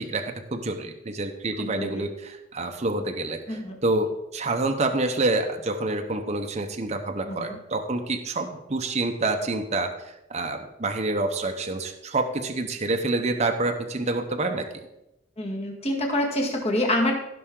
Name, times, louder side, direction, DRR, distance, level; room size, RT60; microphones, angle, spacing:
voice 1, 0.0-14.7, right 2 dB, 35° right, 5 dB, 0.8 m, -27 dB
voice 2, 1.6-2.1 3.5-3.8 7.2-7.6 15.4-17.2, left 1 dB, 35° left, 1 dB, 1.8 m, -26 dB
15.5 x 6.0 x 3.8 m, 0.89 s
head